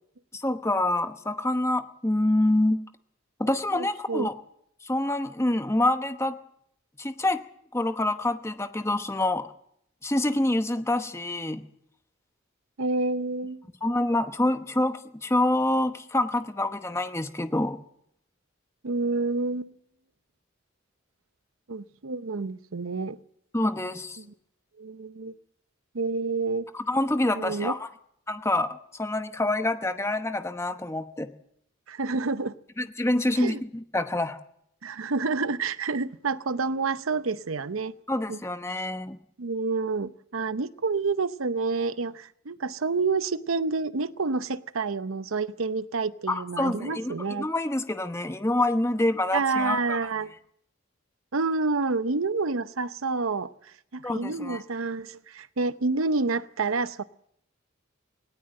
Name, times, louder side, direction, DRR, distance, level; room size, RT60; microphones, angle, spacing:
voice 1, 0.3-2.8 3.4-4.3 4.8-6.4 7.0-7.4 7.7-9.5 10.0-11.6 13.8-17.8 23.5-24.2 26.7-27.9 28.3-31.3 32.8-34.4 38.1-39.2 46.3-50.0 54.0-54.6, left 1 dB, 15° left, 9 dB, 1.0 m, -26 dB
voice 2, 3.7-4.3 12.8-13.6 18.8-19.7 21.7-23.2 24.2-24.3 24.8-25.3 25.9-26.7 27.4-27.8 31.9-32.5 33.4-33.6 34.8-37.9 38.3-38.4 39.4-47.5 49.3-50.3 51.3-57.0, right 4 dB, 80° right, 14 dB, 0.8 m, -28 dB
18.5 x 18.0 x 7.7 m, 0.72 s
head